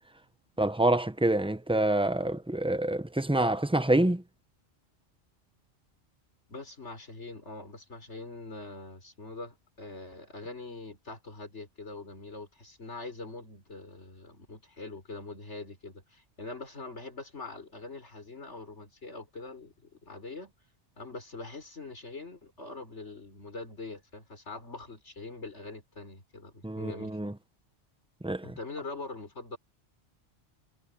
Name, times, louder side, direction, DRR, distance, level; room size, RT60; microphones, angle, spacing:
voice 1, 0.6-4.2 26.6-27.3 28.2-28.5, right 1 dB, 5° right, 0.6 m, -27 dB
voice 2, 6.5-20.5 21.0-27.2 28.4-29.6, left 3 dB, 80° left, 4.8 m, -43 dB
omnidirectional pair, 1.2 m